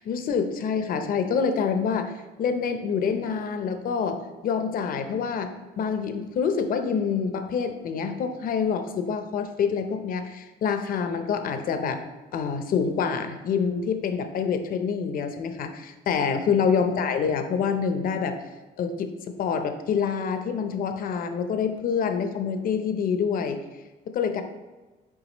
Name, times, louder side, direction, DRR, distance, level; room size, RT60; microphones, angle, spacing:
voice 1, 0.0-2.1 2.4-5.5 5.8-12.0 12.3-18.4 18.8-23.6 24.1-24.4, left 6 dB, 55° left, 8 dB, 0.7 m, -26 dB
7.3 x 4.8 x 3.0 m, 1.2 s
cardioid pair, 110°, 17 cm